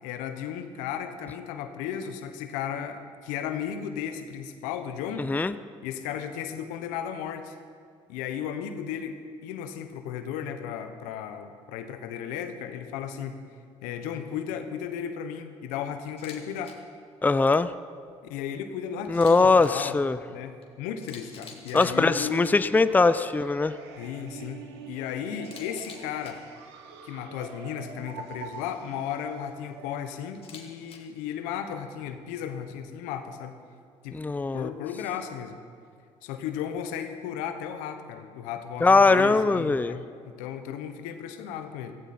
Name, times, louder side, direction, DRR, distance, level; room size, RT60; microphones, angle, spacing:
voice 1, 0.0-5.3 5.8-7.5 8.1-9.1 9.4-13.4 13.8-16.8 18.2-20.0 20.3-22.6 24.0-24.6 24.9-26.4 27.0-33.6 34.0-34.2 34.5-35.6 36.2-41.9, left 8 dB, 80° left, 8 dB, 1.1 m, -35 dB
voice 2, 5.2-5.5 17.2-17.7 19.1-20.2 21.7-23.7 34.1-34.7 38.8-39.9, left 3 dB, 15° left, 14 dB, 0.5 m, -21 dB
Camera, 16.1-16.4 16.6-16.7 19.0-19.7 20.6-20.7 21.0-22.2 25.4-26.3 30.3-31.0, left 5 dB, 45° left, 2.5 m, -46 dB
sound 1, 22.9-30.0, right 6 dB, 90° right, 1.2 m, -45 dB
15.5 x 15.5 x 4.3 m, 2.2 s
supercardioid pair, 65°, 13 cm